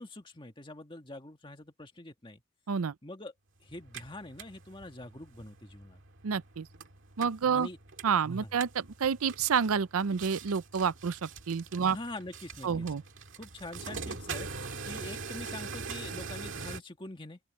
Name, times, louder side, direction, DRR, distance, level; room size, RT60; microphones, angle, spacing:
voice 1, 0.0-2.4 3.0-3.3 3.6-6.0 7.5-7.8 8.3-8.5 11.9-12.9 13.4-17.4, left 2 dB, 20° left, 1.9 m, -44 dB
sound 1, 3.7-16.8, right 4 dB, 55° right, 2.2 m, -43 dB
voice 2, 6.2-6.7 7.2-7.7 8.0-12.0 12.6-13.0, right 6 dB, 75° right, 0.5 m, -29 dB
open air
head